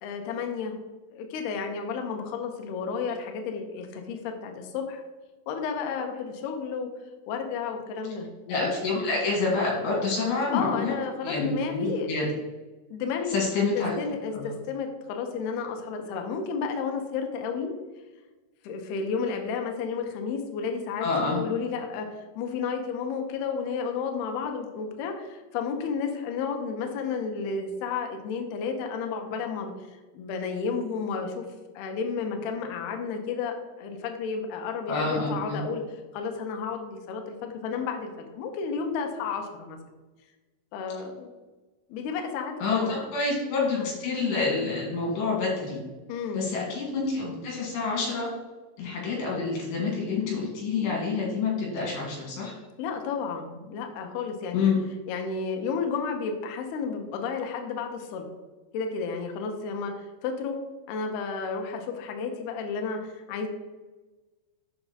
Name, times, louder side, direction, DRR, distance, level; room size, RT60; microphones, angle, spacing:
voice 1, 0.0-0.8 1.1-5.0 5.5-6.9 7.3-8.3 8.6-8.7 10.5-12.1 12.9-13.4 13.7-17.7 18.6-29.7 30.1-31.5 31.8-35.8 36.1-39.8 40.7-41.3 41.9-43.0 43.8-43.9 46.1-46.5 52.8-54.7 55.1-58.3 58.7-60.6 60.9-63.5, left 5 dB, 90° left, 4 dB, 2.2 m, -32 dB
voice 2, 8.5-11.0 11.2-12.3 13.3-14.0 14.3-14.5 21.0-21.4 34.9-35.6 42.6-45.8 46.4-48.3 48.8-52.6 54.5-54.8, left 4 dB, 65° left, -3 dB, 4.1 m, -27 dB
7.5 x 5.8 x 4.1 m, 1.2 s
omnidirectional pair, 5.7 m